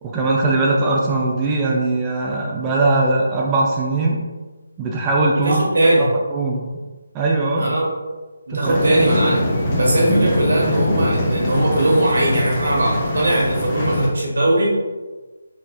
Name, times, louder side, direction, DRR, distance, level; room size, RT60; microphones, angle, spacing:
voice 1, 0.0-4.2 4.8-5.7 6.0-6.8 7.1-7.7 8.5-8.8, right 2 dB, 15° right, -2 dB, 0.4 m, -20 dB
voice 2, 5.4-6.1 7.6-7.9 8.5-9.4 9.8-14.7, right 1 dB, 55° right, -4 dB, 1.2 m, -19 dB
sound 1, 8.6-14.1, left 1 dB, 25° left, 0.6 m, -21 dB
4.0 x 3.3 x 2.2 m, 1.3 s
figure-of-eight pair, 150°, 0 cm